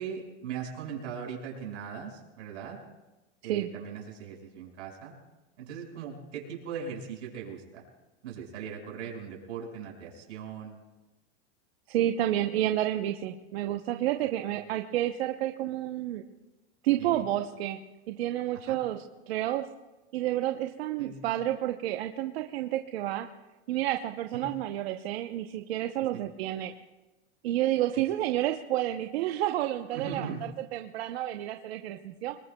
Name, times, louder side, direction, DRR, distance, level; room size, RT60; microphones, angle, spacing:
voice 1, 0.0-2.8 3.4-5.1 5.6-7.8 8.2-10.8 17.0-17.3 18.5-18.8 21.0-21.3 24.3-24.5 26.1-26.2 27.9-28.0 29.9-30.4, right 7 dB, 85° right, 0 dB, 5.4 m, -39 dB
voice 2, 11.9-16.2 16.8-17.8 18.1-19.0 19.3-19.7 20.1-23.3 23.7-26.7 27.4-30.3 30.7-32.4, right 13 dB, 60° right, 5 dB, 0.8 m, -30 dB
25.0 x 21.0 x 2.3 m, 1.1 s
supercardioid pair, 170°, 35 cm